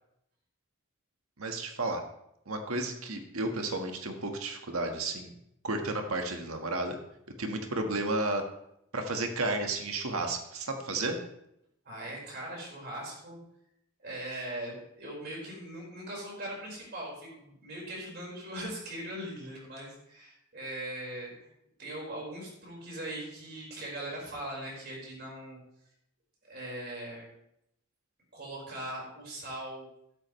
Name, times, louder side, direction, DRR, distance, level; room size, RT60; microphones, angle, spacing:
voice 1, 1.4-2.0 2.5-5.3 5.6-7.0 7.4-8.4 8.9-11.2, right 2 dB, 80° right, 4 dB, 1.6 m, -32 dB
voice 2, 11.8-13.4 14.0-21.5 21.8-25.6 26.5-27.3 28.3-29.9, right 1 dB, 50° right, -3 dB, 4.9 m, -40 dB
13.5 x 11.5 x 3.2 m, 0.78 s
head